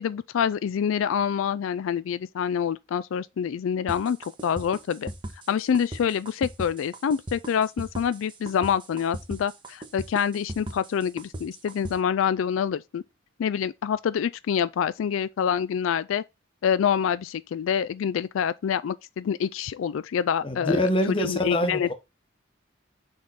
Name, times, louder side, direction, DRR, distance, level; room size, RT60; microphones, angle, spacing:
voice 1, 0.0-5.1 5.5-13.0 13.4-16.2 16.6-20.8 21.2-21.9, left 7 dB, 80° left, 0.3 m, -26 dB
sound 1, 3.9-11.9, right 1 dB, 25° right, 1.0 m, -37 dB
voice 2, 20.4-21.9, left 1 dB, 25° left, 1.0 m, -25 dB
6.3 x 3.7 x 4.0 m
head